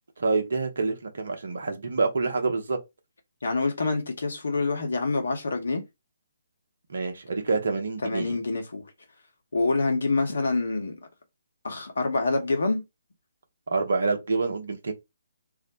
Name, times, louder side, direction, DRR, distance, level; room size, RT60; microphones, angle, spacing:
voice 1, 0.2-2.8 6.9-8.4 13.7-14.9, right 3 dB, 60° right, 0.8 m, -27 dB
voice 2, 3.4-5.8 8.0-8.8 9.5-11.0 11.6-12.8, left 3 dB, 60° left, 1.0 m, -26 dB
2.5 x 2.1 x 3.9 m
figure-of-eight pair, 135°, 0 cm